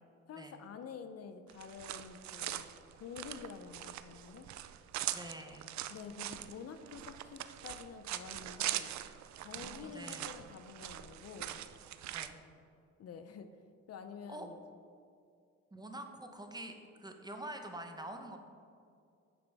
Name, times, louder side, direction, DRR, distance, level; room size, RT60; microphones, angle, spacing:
voice 1, 0.3-2.7 3.0-4.5 5.9-8.9 9.4-11.6 13.0-13.5 13.9-14.6, left 6 dB, 55° left, 9 dB, 0.6 m, -48 dB
sound 1, 1.5-12.3, right 12 dB, 65° right, 0.5 m, -42 dB
voice 2, 5.1-5.7 9.5-10.3 12.1-12.4 14.3-14.5 15.7-16.7 17.0-18.4, right 1 dB, 15° right, 5 dB, 0.9 m, -46 dB
9.4 x 6.9 x 3.4 m, 2.4 s
cardioid pair, 90°, 30 cm